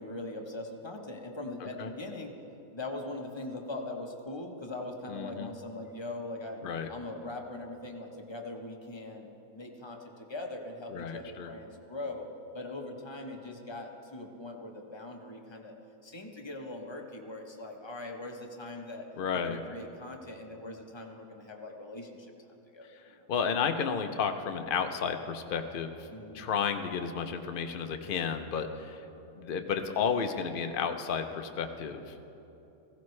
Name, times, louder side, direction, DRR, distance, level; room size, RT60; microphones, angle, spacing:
voice 1, 0.0-2.3 2.7-6.6 6.9-9.3 9.5-12.3 12.5-15.7 16.0-22.3 22.7-22.8 23.2-23.3 26.1-26.5, left 2 dB, 20° left, 1 dB, 0.8 m, -41 dB
voice 2, 5.1-5.5 6.6-6.9 10.9-11.5 19.2-19.6 22.9-23.0 23.3-26.1 26.3-29.0 29.4-32.3, left 6 dB, 60° left, 7 dB, 0.5 m, -32 dB
16.0 x 15.5 x 3.2 m, 3.0 s
omnidirectional pair, 1.7 m